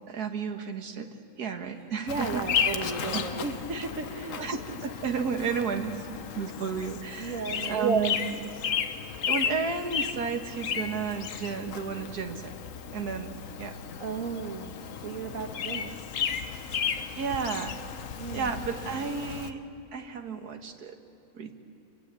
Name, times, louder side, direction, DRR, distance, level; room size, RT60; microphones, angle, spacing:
voice 1, 0.1-2.5 3.1-3.2 3.7-3.9 4.4-8.5 9.3-12.5 12.9-13.8 17.2-17.7 18.3-19.6 19.9-21.0 21.3-21.5, right 5 dB, 80° right, 5 dB, 2.0 m, -32 dB
voice 2, 1.7-4.4 7.1-8.2 14.0-16.0 18.2-18.6, right 4 dB, 60° right, 4 dB, 1.7 m, -36 dB
Bird vocalization bird call bird song, 2.1-19.5, left 7 dB, 60° left, 1.3 m, -34 dB
27.5 x 23.0 x 8.3 m, 2.7 s
omnidirectional pair, 1.6 m